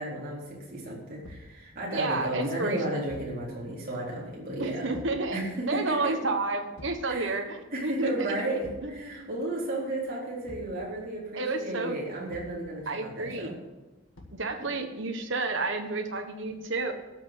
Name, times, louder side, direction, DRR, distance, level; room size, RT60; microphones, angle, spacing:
voice 1, 0.0-4.9 5.3-6.2 7.1-7.4 7.7-13.5, right 1 dB, 40° right, -4 dB, 3.8 m, -33 dB
Thump thud, 1.2-1.6 3.1-3.4 4.9-5.3 6.8-7.1 8.6-9.0 10.5-10.8 12.3-12.7 14.2-14.5, left 2 dB, 70° left, 1.8 m, -46 dB
voice 2, 1.9-2.8 4.6-5.4 5.7-8.4 8.8-9.3 11.3-11.9 12.9-13.5 14.3-16.9, right 3 dB, 55° right, 5 dB, 1.3 m, -31 dB
13.0 x 6.5 x 8.0 m, 1.1 s
head